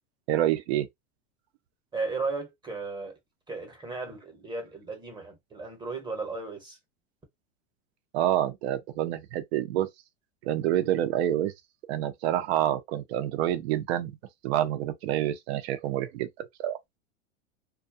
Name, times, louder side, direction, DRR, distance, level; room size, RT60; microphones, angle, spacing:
voice 1, 0.3-0.9 8.1-9.9 10.4-11.5 11.9-14.1 14.4-16.8, right 12 dB, 70° right, 0.6 m, -27 dB
voice 2, 1.9-3.1 3.5-6.8, right 3 dB, 15° right, 0.8 m, -35 dB
2.4 x 2.2 x 2.6 m
supercardioid pair, 140°, 33 cm